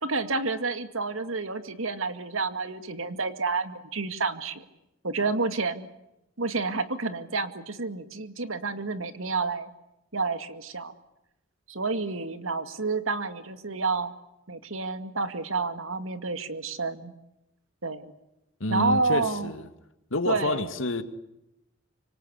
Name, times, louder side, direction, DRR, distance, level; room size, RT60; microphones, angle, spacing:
voice 1, 0.0-4.7 5.0-5.9 6.4-9.7 10.1-10.9 11.7-14.1 14.5-17.1 17.8-18.1 18.7-19.5 20.3-20.7, right 3 dB, 85° right, 2.2 m, -29 dB
voice 2, 18.6-19.7 20.1-21.0, left 2 dB, 70° left, 2.2 m, -28 dB
26.0 x 25.0 x 8.3 m
head